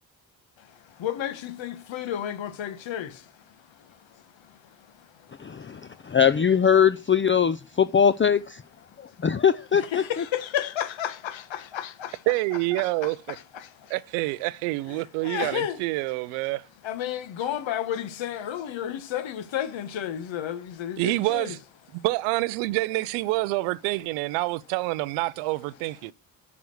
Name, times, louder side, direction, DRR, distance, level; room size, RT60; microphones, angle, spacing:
voice 1, 1.0-3.3 5.9-6.1 9.7-12.2 12.8-13.1 13.5-13.9 15.2-15.8 16.8-21.5, left 10 dB, 65° left, 1.4 m, -32 dB
voice 2, 5.4-8.6 9.2-10.2, left 7 dB, 25° left, 0.6 m, -21 dB
voice 3, 12.3-13.4 13.9-16.6 21.0-21.6 21.9-26.1, right 20 dB, 90° right, 0.6 m, -27 dB
7.1 x 5.9 x 6.4 m
hypercardioid pair, 45°, 48 cm